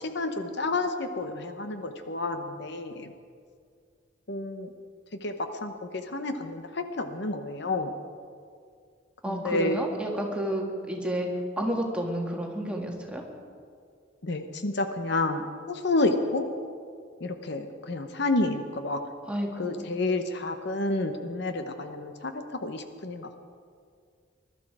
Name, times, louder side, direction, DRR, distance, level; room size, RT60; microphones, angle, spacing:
voice 1, 0.0-3.1 4.3-4.7 5.2-8.0 9.3-9.8 14.2-16.5 17.2-19.0 19.6-23.3, left 2 dB, 60° left, 7 dB, 0.9 m, -30 dB
voice 2, 9.2-11.3 11.6-13.2 19.3-19.9, right 1 dB, 5° right, 0 dB, 1.8 m, -31 dB
21.0 x 12.0 x 4.9 m, 2.2 s
head